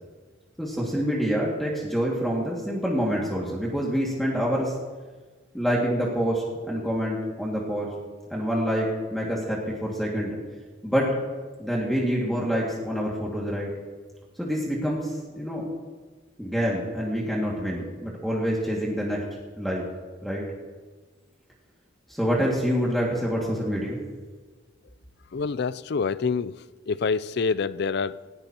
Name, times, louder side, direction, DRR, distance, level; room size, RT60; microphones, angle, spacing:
voice 1, 0.6-4.8 5.5-7.9 8.3-10.4 10.8-11.1 11.6-13.7 14.4-15.7 16.4-19.2 19.6-19.9 20.2-20.4 22.1-24.0, equal, ahead, -4 dB, 2.1 m, -26 dB
voice 2, 25.3-26.5 26.9-28.2, left 5 dB, 55° left, 16 dB, 0.4 m, -26 dB
19.5 x 17.5 x 3.0 m, 1.4 s
head